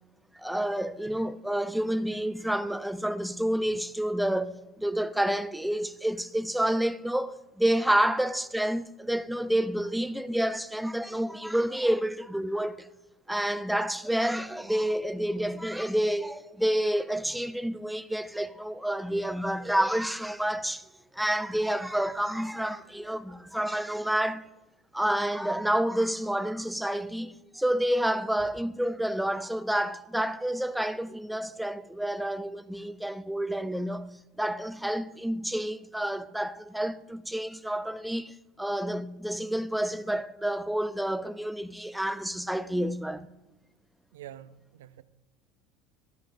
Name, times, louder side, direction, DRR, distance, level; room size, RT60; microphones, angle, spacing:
voice 1, 0.3-12.9 13.3-20.9 21.1-24.4 24.9-34.1 34.4-43.3, right 1 dB, 5° right, 0.5 m, -29 dB
voice 2, 44.1-45.0, right 12 dB, 85° right, 0.4 m, -46 dB
12.5 x 10.0 x 2.6 m
hypercardioid pair, 85°, 0 cm